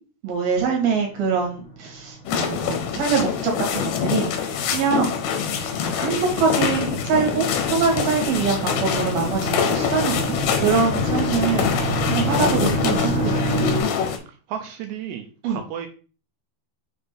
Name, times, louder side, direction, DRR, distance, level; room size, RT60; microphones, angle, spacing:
voice 1, 0.2-5.2 6.0-13.7 15.4-15.6, right 5 dB, 60° right, 0 dB, 3.5 m, -24 dB
sound 1, 0.8-13.8, right 2 dB, 25° left, 1.9 m, -30 dB
sound 2, 2.3-14.2, left 7 dB, 75° left, 2.8 m, -25 dB
voice 2, 14.3-15.9, right 8 dB, 80° right, 5 dB, 2.6 m, -34 dB
6.8 x 4.1 x 3.7 m, 0.38 s
omnidirectional pair, 5.2 m